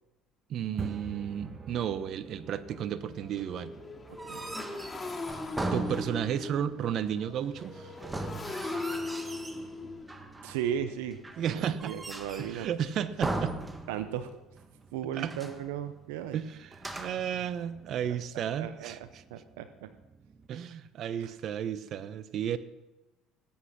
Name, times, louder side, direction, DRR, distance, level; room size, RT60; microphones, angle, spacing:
voice 1, 0.5-3.7 5.7-7.9 11.4-11.9 12.4-13.5 15.2-15.3 16.3-19.2 20.5-22.6, right 9 dB, 55° right, 14 dB, 0.9 m, -33 dB
sound 1, 0.6-20.5, right 5 dB, 35° right, 1.4 m, -51 dB
Motorcycle, 0.8-0.9 1.3-1.5 1.8-13.4, left 3 dB, 20° left, 2.4 m, -41 dB
sound 2, 4.1-6.5 8.0-9.7 10.1-10.7 11.2-12.6 13.2-14.3 14.6-14.7 15.1-15.7 16.7-17.4, right 2 dB, 15° right, 1.6 m, -38 dB
voice 2, 4.2-4.6 10.4-11.2 11.5-12.7 13.9-14.4 14.9-16.4 17.3-17.4 18.1-19.0 19.3-19.9 21.2-21.3, right 9 dB, 85° right, 11 dB, 0.7 m, -36 dB
18.5 x 8.6 x 6.0 m, 1.0 s
supercardioid pair, 80°, 0 cm